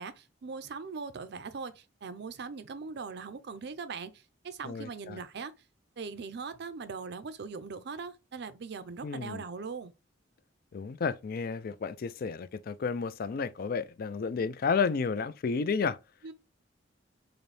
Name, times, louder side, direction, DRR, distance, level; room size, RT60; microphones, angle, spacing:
voice 1, 0.0-4.1 4.4-5.5 6.0-9.9 16.2-16.3, right 5 dB, 65° right, 0.5 m, -40 dB
voice 2, 4.6-5.2 9.0-9.4 10.7-16.0, left 5 dB, 55° left, 0.4 m, -32 dB
4.0 x 2.6 x 3.3 m
head